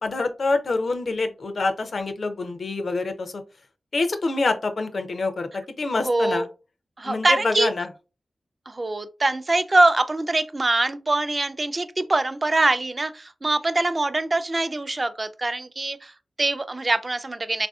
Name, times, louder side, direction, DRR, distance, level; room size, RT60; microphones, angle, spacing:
voice 1, 0.0-3.3 3.9-6.5 7.0-7.9, left 3 dB, 70° left, 0.4 m, -26 dB
voice 2, 5.9-6.5 7.0-7.7 8.7-17.7, right 2 dB, 40° right, 0.3 m, -23 dB
3.4 x 2.5 x 2.3 m
cardioid pair, 40°, 0 cm